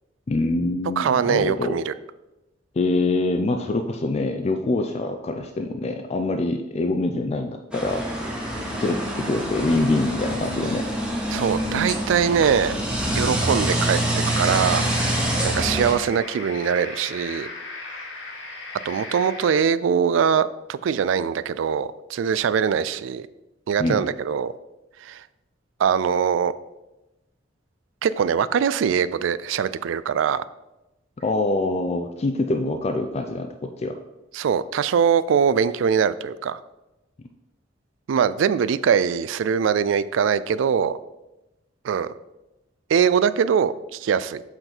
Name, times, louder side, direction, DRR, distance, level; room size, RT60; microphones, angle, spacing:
voice 1, 0.3-1.8 2.8-8.0 8.8-10.8 23.8-24.1 31.2-34.0, left 2 dB, 35° left, 5 dB, 0.4 m, -25 dB
voice 2, 1.0-1.9 11.3-12.7 13.2-14.0 14.4-14.8 15.4-17.5 18.9-23.3 23.7-24.5 25.0-25.2 25.8-26.5 28.0-30.4 34.3-36.6 38.1-41.0 41.8-42.1 42.9-44.4, right 7 dB, 75° right, 16 dB, 0.3 m, -22 dB
sound 1, 7.7-15.9, right 1 dB, 5° right, 1.1 m, -26 dB
sound 2, 14.2-19.6, left 3 dB, 80° left, 1.7 m, -37 dB
7.7 x 3.9 x 4.4 m, 0.98 s
head